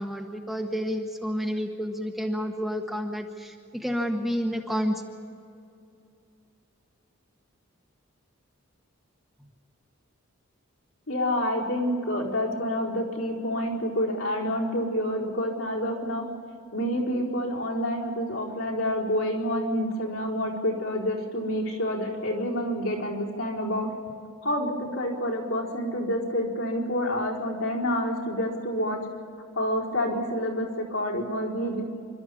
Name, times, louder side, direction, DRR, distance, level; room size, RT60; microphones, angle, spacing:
voice 1, 0.0-5.0, equal, ahead, 1 dB, 1.3 m, -30 dB
voice 2, 11.1-16.2 16.7-23.9 24.4-29.0 29.6-31.8, equal, 70° left, -2 dB, 4.7 m, -28 dB
27.5 x 13.0 x 8.6 m, 2.5 s
head